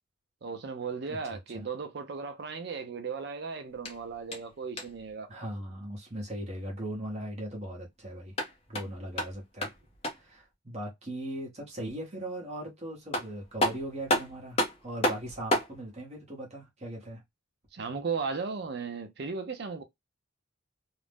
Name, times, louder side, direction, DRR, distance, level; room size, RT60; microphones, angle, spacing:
voice 1, 0.4-5.5 17.7-19.8, right 5 dB, 55° right, 0.5 m, -36 dB
voice 2, 1.1-1.7 5.3-8.3 8.7-9.7 10.1-17.2, right 1 dB, 30° right, 0.8 m, -39 dB
sound 1, 3.7-5.1 8.1-10.4 12.7-12.8 13.1-15.8, equal, 30° left, 0.6 m, -32 dB
2.4 x 2.0 x 3.3 m
head